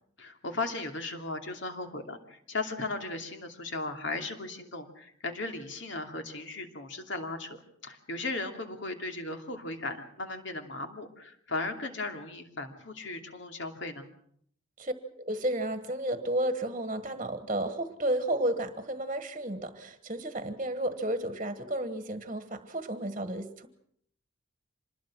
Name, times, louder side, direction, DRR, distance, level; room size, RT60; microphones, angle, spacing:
voice 1, 0.2-7.6 7.8-14.1, left 2 dB, 60° left, 5 dB, 2.7 m, -36 dB
voice 2, 14.8-23.7, right 1 dB, 30° right, 9 dB, 1.5 m, -32 dB
26.0 x 20.5 x 6.2 m, 0.66 s
head